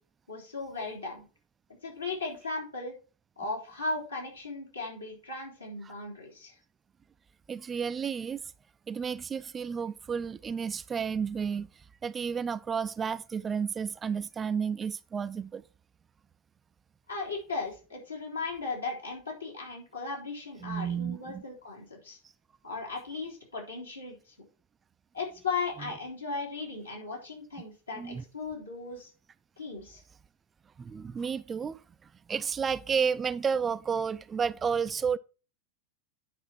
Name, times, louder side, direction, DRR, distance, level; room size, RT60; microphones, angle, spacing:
voice 1, 0.3-1.2 1.8-2.9 3.4-6.5 17.1-22.2 22.6-24.3 25.1-29.1 29.6-30.0, left 3 dB, 80° left, 3.2 m, -37 dB
voice 2, 7.5-8.4 8.9-15.6 20.6-21.4 25.8-26.0 27.9-28.3 30.8-31.8 32.3-35.2, right 6 dB, 20° right, 0.4 m, -32 dB
9.3 x 5.3 x 4.2 m
figure-of-eight pair, 90°, 0 cm